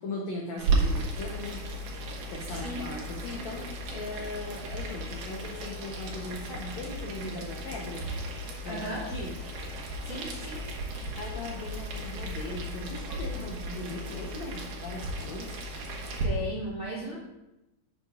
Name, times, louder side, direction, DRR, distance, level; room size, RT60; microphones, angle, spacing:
voice 1, 0.0-1.6 1.9-8.1 8.6-9.3 11.2-15.6, left 2 dB, 80° left, -1 dB, 1.6 m, -39 dB
Boiling, 0.6-16.2, right 2 dB, 65° right, 2.8 m, -35 dB
voice 2, 2.5-2.9 8.6-9.1 10.0-10.6 16.2-17.2, equal, 35° right, -6 dB, 1.5 m, -36 dB
12.0 x 8.4 x 2.5 m, 0.95 s
omnidirectional pair, 4.7 m